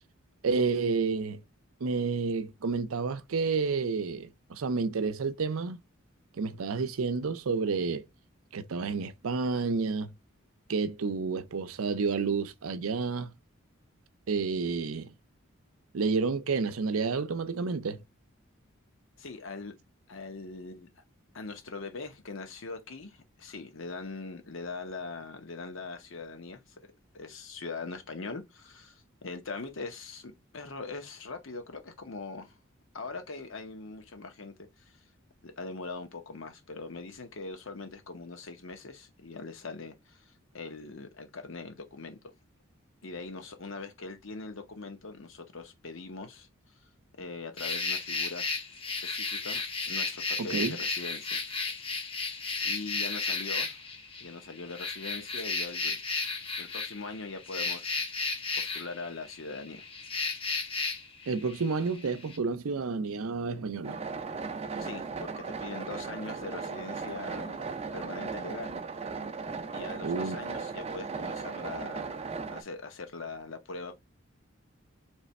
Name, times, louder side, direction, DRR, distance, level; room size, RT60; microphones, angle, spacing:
voice 1, 0.4-1.4 1.8-5.8 6.4-8.0 8.5-10.1 10.7-13.3 14.3-15.1 15.9-18.0 50.5-50.8 61.3-64.0 70.0-70.4, right 4 dB, 80° right, 0.5 m, -30 dB
voice 2, 19.2-19.7 20.1-20.9 21.3-26.8 27.1-32.5 32.9-35.0 35.4-42.3 43.0-46.5 47.2-48.5 49.0-51.4 52.6-53.9 54.2-56.0 56.6-58.0 58.6-59.8 64.8-67.6 67.9-68.8 69.7-72.2 72.5-74.0, left 3 dB, 65° left, 0.9 m, -41 dB
sound 1, 47.6-62.4, left 4 dB, 25° left, 0.6 m, -34 dB
sound 2, 63.8-72.6, right 4 dB, 30° right, 0.4 m, -37 dB
3.3 x 3.3 x 4.1 m
head